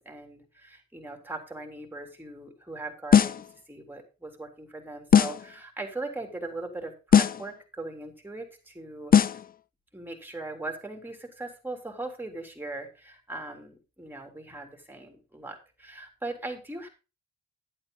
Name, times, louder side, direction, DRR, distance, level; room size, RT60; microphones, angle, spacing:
voice 1, 0.0-3.4 3.7-9.4 9.9-16.9, right 2 dB, 5° right, 4 dB, 3.5 m, -39 dB
sound 1, 3.1-3.5 5.1-5.5 7.1-7.5 9.1-9.5, left 8 dB, 30° left, 0.5 m, -19 dB
11.0 x 8.8 x 3.9 m, 0.31 s
cardioid pair, 90°, 30 cm